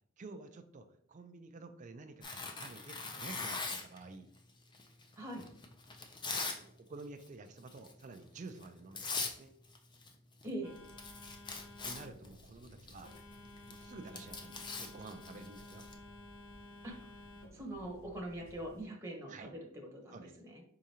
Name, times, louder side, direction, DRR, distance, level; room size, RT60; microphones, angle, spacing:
voice 1, 0.2-4.3 6.6-9.5 11.8-13.2 13.7-15.9 19.3-19.5 20.1-20.3, right 3 dB, 35° right, 7 dB, 0.4 m, -50 dB
Tearing, 2.2-4.0 4.7-6.6 6.9-7.3 7.7-7.9 8.6-8.7 9.0-9.4 9.6-10.2 10.4-10.5 10.8-15.9, left 4 dB, 20° left, 0.5 m, -41 dB
voice 2, 5.2-5.5 10.4-10.8 16.8-16.9 17.5-20.6, right 1 dB, 15° right, 0 dB, 0.9 m, -43 dB
Telephone, 10.6-18.8, left 1 dB, 80° left, 0.8 m, -54 dB
4.8 x 3.7 x 2.8 m, 0.67 s
head